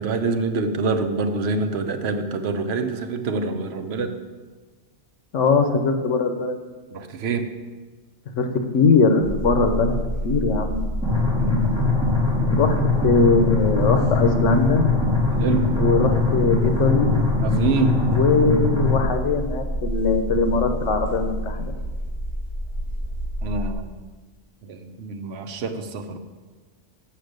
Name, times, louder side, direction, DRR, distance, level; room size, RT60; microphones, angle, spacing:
voice 1, 0.0-4.2 6.9-7.6 11.4-11.7 15.3-15.7 17.4-18.1 23.4-23.9 24.6-26.2, right 4 dB, 65° right, 6 dB, 0.9 m, -26 dB
voice 2, 5.3-6.6 8.4-8.5 8.7-10.0 10.2-10.8 12.5-12.8 13.0-14.9 15.7-17.1 18.1-21.7, left 4 dB, 80° left, 6 dB, 1.2 m, -20 dB
sound 1, 9.2-23.7, equal, 30° left, 2.3 m, -28 dB
sound 2, 11.0-19.0, left 3 dB, 5° right, 1.6 m, -22 dB
6.8 x 5.7 x 6.5 m, 1.3 s
omnidirectional pair, 1.2 m